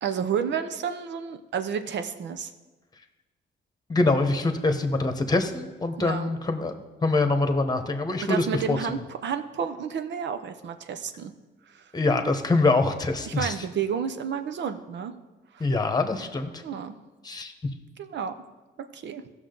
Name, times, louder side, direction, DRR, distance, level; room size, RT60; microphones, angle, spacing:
voice 1, 0.0-2.5 6.0-6.3 8.2-11.3 11.7-11.9 13.3-15.1 15.5-15.7 16.6-16.9 18.0-18.3 18.9-19.2, right 7 dB, 65° right, 9 dB, 0.8 m, -31 dB
voice 2, 3.9-6.7 7.0-8.8 11.9-13.5 15.6-16.6 17.2-17.5, left 3 dB, 20° left, 7 dB, 1.2 m, -24 dB
15.5 x 6.2 x 3.9 m, 1.2 s
cardioid pair, 90°, 20 cm